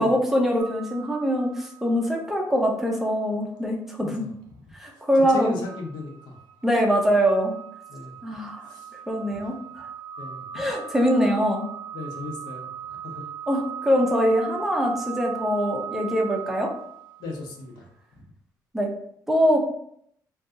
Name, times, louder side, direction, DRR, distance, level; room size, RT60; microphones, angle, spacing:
voice 1, 0.0-4.2 4.8-5.6 6.6-7.6 8.2-8.7 9.1-9.9 10.5-11.7 13.5-16.7 18.7-18.9 19.3-19.6, equal, 5° right, 0 dB, 0.4 m, -23 dB
sound 1, 0.6-2.5 2.9-3.0 5.6-17.5, right 9 dB, 75° right, 0.4 m, -39 dB
voice 2, 5.3-6.4 7.9-8.2 8.7-8.9 9.3-9.5 10.2-10.4 11.9-13.2 17.2-17.8, left 2 dB, 75° left, 0 dB, 0.8 m, -37 dB
2.7 x 2.3 x 3.6 m, 0.68 s
cardioid pair, 175°, 7 cm